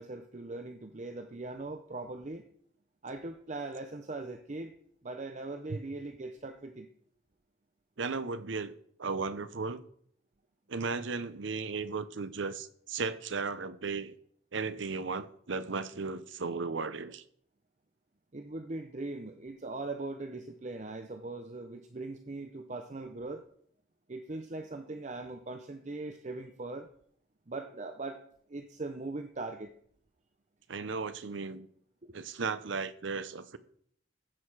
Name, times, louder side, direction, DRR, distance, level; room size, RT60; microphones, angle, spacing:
voice 1, 0.0-2.4 3.0-4.7 5.0-6.9 18.3-23.5 24.1-26.9 27.5-28.2 28.5-29.7 32.0-32.2, right 2 dB, 35° right, 0.6 m, -40 dB
voice 2, 8.0-9.8 10.7-14.1 14.5-17.2 30.7-31.7 32.1-33.6, right 4 dB, 70° right, 0.7 m, -35 dB
15.0 x 6.5 x 4.8 m
head